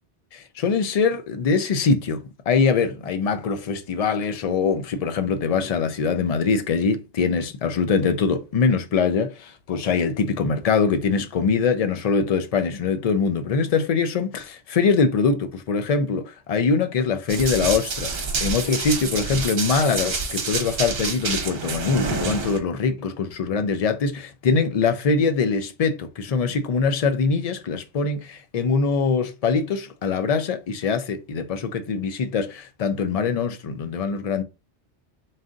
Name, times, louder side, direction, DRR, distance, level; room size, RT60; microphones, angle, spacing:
voice 1, 0.3-34.4, left 5 dB, 55° left, 0.4 m, -23 dB
Run, 17.3-22.6, right 4 dB, 60° right, 1.1 m, -28 dB
4.0 x 2.5 x 3.7 m
omnidirectional pair, 1.2 m